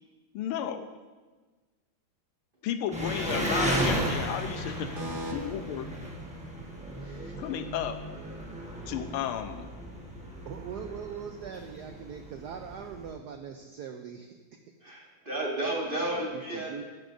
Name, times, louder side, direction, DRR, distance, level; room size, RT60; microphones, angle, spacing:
voice 1, 0.3-0.9 2.6-4.9 5.3-5.9 7.4-8.0 8.9-9.7, left 10 dB, 85° left, 9 dB, 1.5 m, -33 dB
Engine, 2.9-13.1, right 1 dB, 10° right, 0.4 m, -34 dB
voice 2, 5.0-5.3 7.0-7.3 14.8-16.8, right 1 dB, 25° right, -3 dB, 1.7 m, -33 dB
voice 3, 10.4-14.4 16.3-16.8, right 7 dB, 90° right, 5 dB, 0.9 m, -41 dB
12.5 x 10.0 x 2.6 m, 1.3 s
omnidirectional pair, 2.4 m